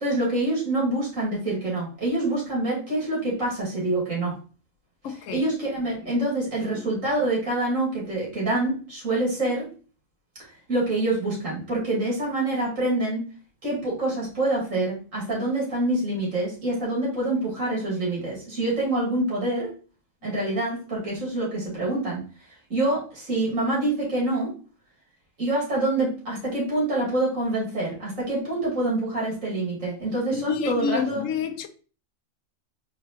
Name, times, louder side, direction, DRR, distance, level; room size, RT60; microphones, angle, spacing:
voice 1, 0.0-4.3 5.3-9.7 10.7-13.3 13.6-19.7 20.2-22.2 22.7-24.5 25.4-31.2, right 2 dB, 90° right, 2.7 m, -26 dB
voice 2, 5.0-5.5 6.0-6.2 6.7-6.9 30.3-31.7, left 7 dB, 80° left, 1.0 m, -29 dB
4.4 x 4.0 x 3.0 m
omnidirectional pair, 1.3 m